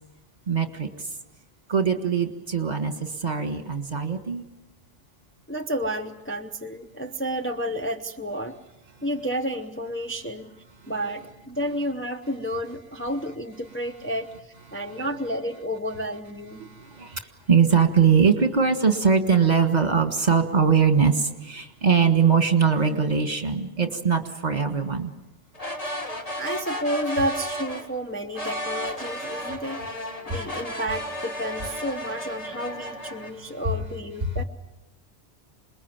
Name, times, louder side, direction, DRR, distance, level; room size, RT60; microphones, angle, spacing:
voice 1, 0.5-0.9 1.7-4.4 15.0-15.1 16.6-17.2 17.5-25.1 33.3-33.4 34.2-34.3, right 6 dB, 40° right, 6 dB, 1.8 m, -21 dB
voice 2, 5.5-8.6 9.0-10.5 10.9-16.6 26.4-29.8 30.3-34.4, equal, 10° left, 3 dB, 0.9 m, -31 dB
sound 1, 25.5-27.9 28.3-33.3, equal, 35° left, 1.9 m, -33 dB
27.0 x 21.0 x 7.3 m, 1.0 s
omnidirectional pair, 1.1 m